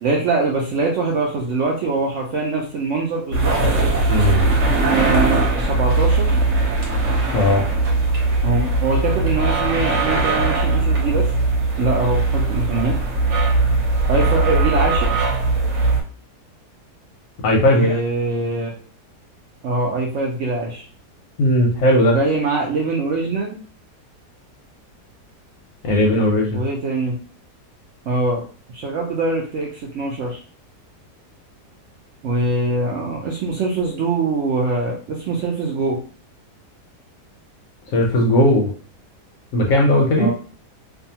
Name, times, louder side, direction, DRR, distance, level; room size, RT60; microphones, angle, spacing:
voice 1, 0.0-3.5 4.9-6.3 8.4-11.3 11.8-13.0 14.1-15.2 17.6-18.7 19.6-20.9 22.0-23.5 26.5-27.2 28.1-28.4 28.7-30.4 32.2-36.0 40.2-40.3, right 3 dB, 70° right, -2 dB, 0.7 m, -23 dB
sound 1, 3.3-16.0, right 2 dB, 55° right, 1.0 m, -19 dB
voice 2, 4.1-4.4 7.3-7.6 17.4-17.9 21.4-22.2 25.8-26.6 37.9-38.7 39.5-40.3, left 1 dB, 65° left, 0 dB, 0.8 m, -17 dB
2.6 x 2.2 x 2.7 m, 0.42 s
omnidirectional pair, 1.7 m